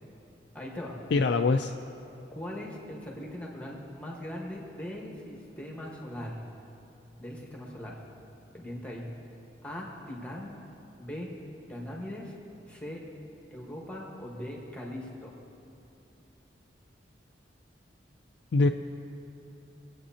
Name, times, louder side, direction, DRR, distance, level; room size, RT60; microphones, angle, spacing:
voice 1, 0.5-1.3 2.3-6.4 7.2-8.0 8.5-9.1 9.6-10.5 11.0-11.3 11.7-12.3 12.7-13.0 13.5-15.3, left 1 dB, 5° left, -2 dB, 1.4 m, -40 dB
voice 2, 1.1-1.7 18.5-18.7, left 3 dB, 70° left, 5 dB, 0.4 m, -23 dB
24.0 x 8.3 x 2.8 m, 2.8 s
head